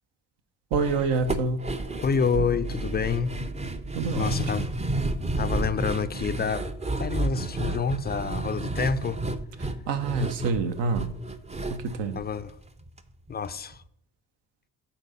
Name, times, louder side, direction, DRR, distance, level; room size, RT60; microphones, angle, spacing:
sound 1, 0.7-13.0 13.3-13.4 13.7-13.8, right 2 dB, 15° right, 0.6 m, -31 dB
voice 1, 0.7-1.6 3.9-4.7 9.6-11.1 11.7-12.2, right 4 dB, 60° right, 1.0 m, -27 dB
voice 2, 2.0-3.3 4.2-4.7 5.4-6.6 7.0-9.2 12.1-12.5 13.3-13.8, left 6 dB, 20° left, 0.5 m, -28 dB
sound 2, 2.3-6.2, right 1 dB, 75° right, 1.4 m, -37 dB
8.9 x 4.1 x 5.6 m
figure-of-eight pair, 40°, 49 cm